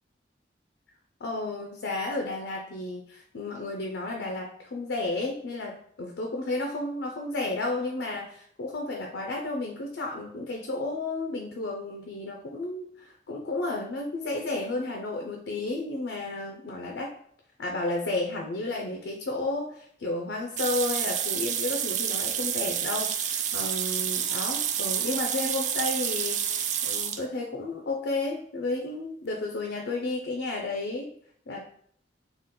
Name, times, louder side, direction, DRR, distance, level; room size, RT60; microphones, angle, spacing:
voice 1, 1.2-17.1 17.6-26.4 26.9-31.1 31.5-31.7, left 2 dB, 75° left, 1 dB, 0.5 m, -32 dB
sound 1, 20.6-27.2, right 9 dB, 45° right, 0.3 m, -29 dB
3.7 x 2.4 x 3.7 m, 0.63 s
head